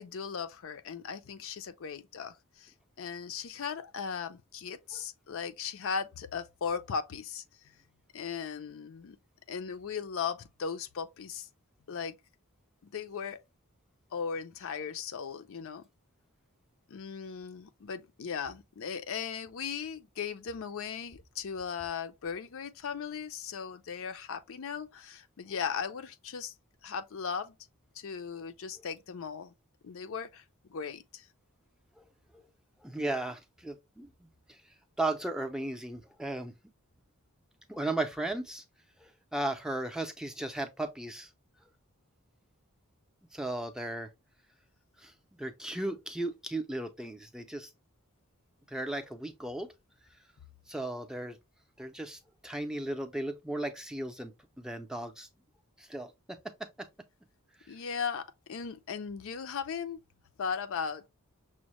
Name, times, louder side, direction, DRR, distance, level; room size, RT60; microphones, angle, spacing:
voice 1, 0.0-7.8 8.1-9.2 9.5-11.5 11.9-12.2 12.8-13.4 14.1-15.8 16.9-26.5 26.8-27.6 28.0-29.5 29.8-30.4 30.7-31.3 57.7-60.0 60.4-61.1, left 6 dB, 65° left, 0.5 m, -37 dB
voice 2, 32.8-34.6 35.0-36.5 37.7-38.6 39.0-41.3 43.3-44.1 45.0-47.7 48.7-49.7 50.7-51.4 51.8-54.3 54.6-55.3 55.8-56.4 56.8-56.9, right 2 dB, 5° right, 0.5 m, -36 dB
6.1 x 2.1 x 3.0 m
head